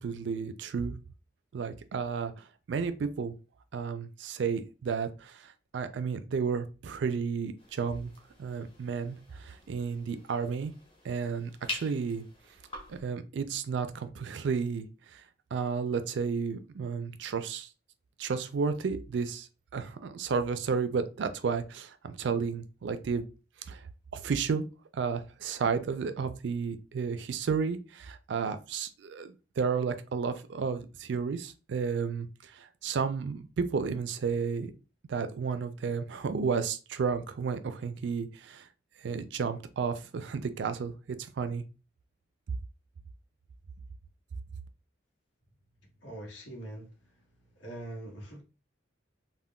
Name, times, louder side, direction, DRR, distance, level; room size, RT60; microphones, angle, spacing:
voice 1, 0.0-1.0 1.5-2.3 2.7-3.3 3.7-8.1 8.4-10.7 11.0-12.2 12.9-14.9 15.1-15.2 15.5-17.7 18.2-19.5 19.7-23.2 23.7-23.8 24.1-24.6 24.9-32.3 32.5-34.7 35.1-38.7 39.0-41.6, right 5 dB, 65° right, 0.3 m, -32 dB
sound 1, 7.6-13.0, left 2 dB, 25° left, 0.7 m, -45 dB
voice 2, 46.0-46.9 47.6-48.4, right 1 dB, 75° left, 1.1 m, -42 dB
3.6 x 2.1 x 2.2 m
head